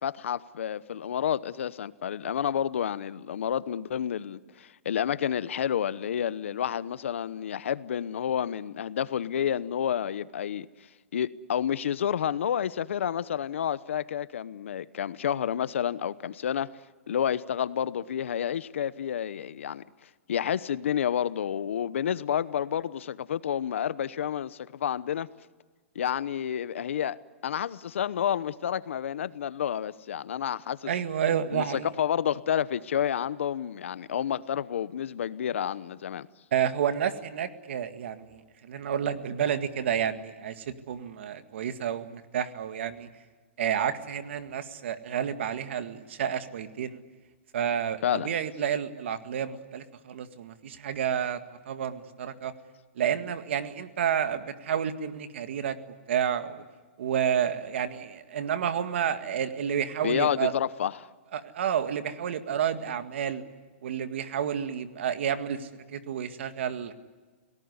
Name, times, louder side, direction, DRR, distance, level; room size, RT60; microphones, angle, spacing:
voice 1, 0.0-10.7 11.1-16.7 17.1-19.8 20.3-25.3 25.9-30.9 31.5-36.3 48.0-48.3 60.0-61.1, left 9 dB, 80° left, 1.0 m, -30 dB
voice 2, 30.9-31.9 36.5-43.1 43.6-47.0 47.5-51.4 51.7-52.5 53.0-55.8 56.1-56.6 57.0-60.5 61.3-63.4 63.8-66.9, right 8 dB, 70° right, 1.9 m, -30 dB
28.5 x 18.5 x 9.7 m
hypercardioid pair, 155°, 7 cm